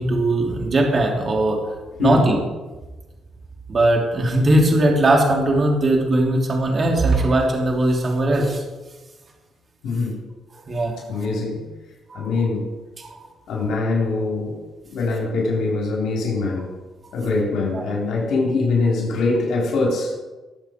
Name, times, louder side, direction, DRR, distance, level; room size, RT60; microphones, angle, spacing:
voice 1, 0.0-1.6 2.0-2.4 3.7-8.6 10.7-11.0 12.1-12.3 13.0-13.2 17.7-17.8, right 1 dB, 40° right, 0 dB, 3.1 m, -19 dB
voice 2, 9.8-10.2 11.1-11.7 12.1-12.7 13.5-14.6 14.9-16.7 17.1-20.2, left 3 dB, 75° left, -2 dB, 3.9 m, -23 dB
20.5 x 7.6 x 4.6 m, 1.2 s
cardioid pair, 90°, 0 cm